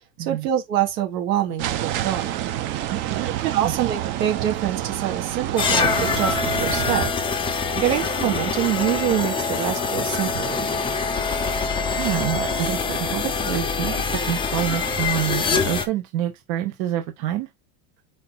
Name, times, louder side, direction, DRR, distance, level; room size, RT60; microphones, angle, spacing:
voice 1, 0.2-2.5 3.4-7.1 7.8-10.6, right 11 dB, 85° right, 3.0 m, -25 dB
sound 1, 1.6-7.1, right 13 dB, 30° right, 0.4 m, -28 dB
voice 2, 2.9-3.3 3.5-3.7 12.0-17.5, right 12 dB, 55° right, 1.2 m, -27 dB
sound 2, 5.6-15.9, left 4 dB, 10° left, 1.0 m, -24 dB
5.1 x 4.2 x 4.3 m
supercardioid pair, 155°, 47 cm